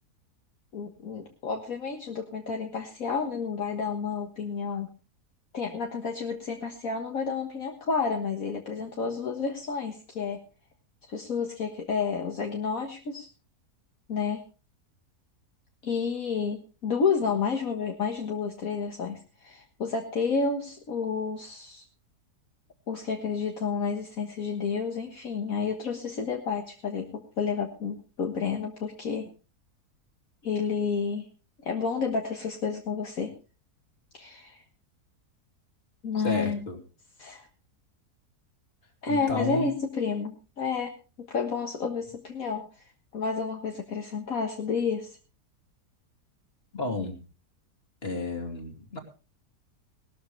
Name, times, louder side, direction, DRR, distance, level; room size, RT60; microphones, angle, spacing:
voice 1, 0.7-4.9 5.5-10.4 11.1-13.3 14.1-14.4 15.8-21.8 22.9-29.3 30.4-31.3 31.7-33.3 34.1-34.6 36.0-36.6 37.2-37.5 39.0-40.9 41.2-45.2, left 5 dB, 60° left, 2 dB, 1.9 m, -30 dB
voice 2, 36.1-36.8 39.1-39.7 46.7-47.2 48.0-49.0, left 2 dB, 40° left, 4 dB, 2.8 m, -32 dB
19.0 x 13.5 x 3.3 m, 0.33 s
omnidirectional pair, 1.7 m